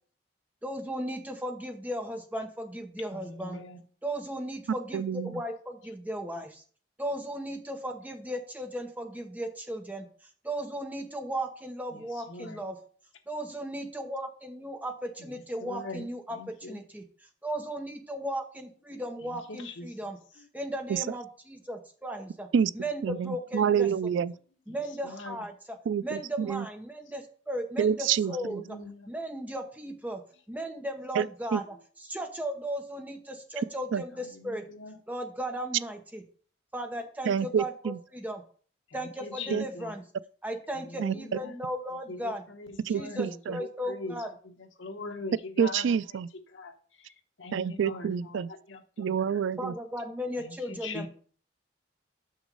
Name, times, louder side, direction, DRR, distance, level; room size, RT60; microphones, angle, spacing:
voice 1, 0.6-3.6 4.0-6.6 7.0-10.1 10.4-12.8 13.3-17.0 17.4-20.2 20.5-22.5 22.7-23.9 24.7-28.8 29.1-30.2 30.5-34.7 35.1-36.2 36.7-38.4 38.9-40.0 40.4-42.4 42.9-44.3 49.3-51.1, equal, 10° right, 0.9 m, -36 dB
voice 2, 3.4-3.8 12.3-12.6 15.6-16.0 16.4-16.8 18.9-19.0 25.2-25.3 28.6-28.9 34.5-34.9 39.2-39.9 42.9-43.2 43.9-44.1 44.8-45.8 46.5-46.7 47.4-48.1 48.3-48.4 48.7-49.1 50.8-51.1, left 3 dB, 80° left, 1.1 m, -40 dB
voice 3, 4.9-5.3 20.9-21.0 22.5-22.7 23.0-24.3 25.9-26.6 27.8-28.3 31.2-31.3 31.5-31.6 33.9-34.0 37.3-38.0 39.5-39.6 41.0-41.1 42.9-43.6 45.6-46.3 47.5-48.5 49.0-49.7, right 7 dB, 75° right, 0.3 m, -27 dB
6.3 x 6.1 x 5.3 m
head